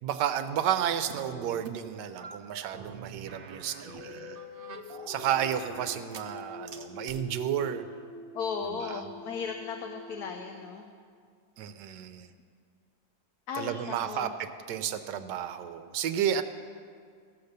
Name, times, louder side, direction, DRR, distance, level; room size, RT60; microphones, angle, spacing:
voice 1, 0.0-4.2 5.1-7.9 8.7-9.0 11.6-12.3 13.5-16.4, right 9 dB, 75° right, 10 dB, 1.2 m, -32 dB
sound 1, 1.1-1.8 2.2-6.4 6.7-7.2, right 5 dB, 90° right, 0.5 m, -45 dB
sound 2, 3.8-11.2, left 4 dB, 80° left, 1.4 m, -46 dB
voice 2, 8.3-10.8 13.5-14.3 14.9-15.2, left 5 dB, 65° left, 4 dB, 1.1 m, -36 dB
15.0 x 6.9 x 6.6 m, 2.1 s
omnidirectional pair, 2.0 m